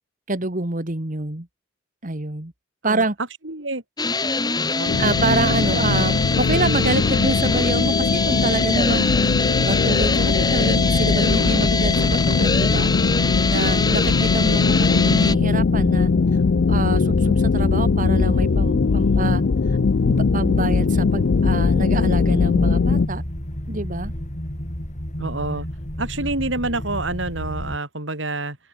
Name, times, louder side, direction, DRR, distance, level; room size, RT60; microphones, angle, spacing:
voice 1, 0.3-1.5 2.0-2.5 2.8-3.2 5.0-9.1 9.6-12.9 13.5-14.6 14.9-16.1 16.7-19.4 20.1-23.2 23.7-24.1, right 2 dB, 45° right, 1.9 m, -26 dB
voice 2, 3.4-3.8 4.7-5.2 25.2-25.7 26.0-28.6, right 2 dB, 75° right, 5.9 m, -28 dB
sound 1, 4.0-15.3, left 3 dB, 20° left, 4.0 m, -23 dB
sound 2, 4.9-23.1, left 4 dB, 60° left, 0.4 m, -20 dB
sound 3, 10.9-27.8, equal, 40° left, 4.0 m, -31 dB
open air
head